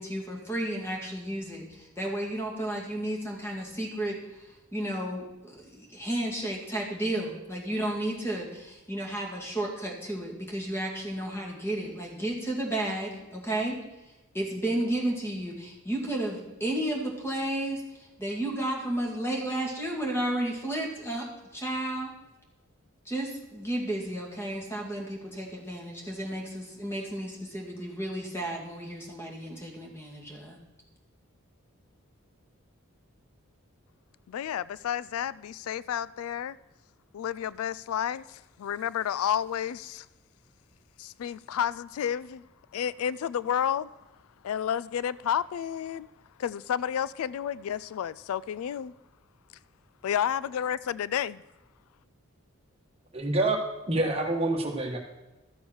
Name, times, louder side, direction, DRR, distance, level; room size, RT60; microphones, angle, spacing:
voice 1, 0.0-13.8 14.3-22.1 23.1-30.6, right 1 dB, 10° left, 2.2 m, -32 dB
voice 2, 34.3-36.6 37.1-40.1 41.0-42.4 42.7-43.9 44.4-46.1 46.4-48.9 50.0-51.4, left 9 dB, 80° left, 0.3 m, -31 dB
voice 3, 53.1-53.6 53.9-55.0, right 2 dB, 25° right, 1.3 m, -26 dB
13.0 x 7.0 x 6.3 m
head